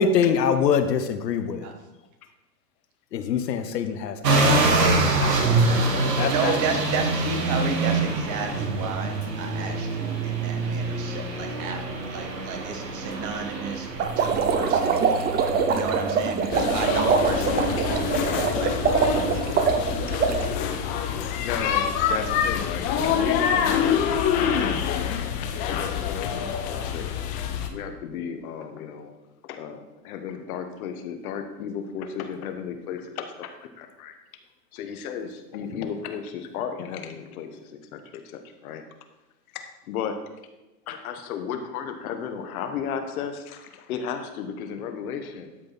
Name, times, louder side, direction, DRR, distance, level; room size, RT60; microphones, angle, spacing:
voice 1, 0.0-1.7 3.1-6.5 26.3-26.4, left 6 dB, 75° left, 9 dB, 1.1 m, -25 dB
sound 1, 4.2-20.8, right 3 dB, 75° right, 1.8 m, -26 dB
voice 2, 5.4-5.8 20.1-20.8 21.1-25.1 25.7-27.1 27.7-29.1 29.4-34.1 34.7-38.8 39.5-40.2 40.9-45.5, left 7 dB, 60° left, 7 dB, 1.3 m, -34 dB
voice 3, 6.3-15.3 15.7-19.5, right 5 dB, 35° right, 4 dB, 1.8 m, -32 dB
sound 2, 14.0-20.5, right 6 dB, 20° right, 0.7 m, -24 dB
sound 3, 16.5-27.7, left 7 dB, 20° left, 0.3 m, -26 dB
12.5 x 5.3 x 4.3 m, 1.0 s
hypercardioid pair, 110°, 50 cm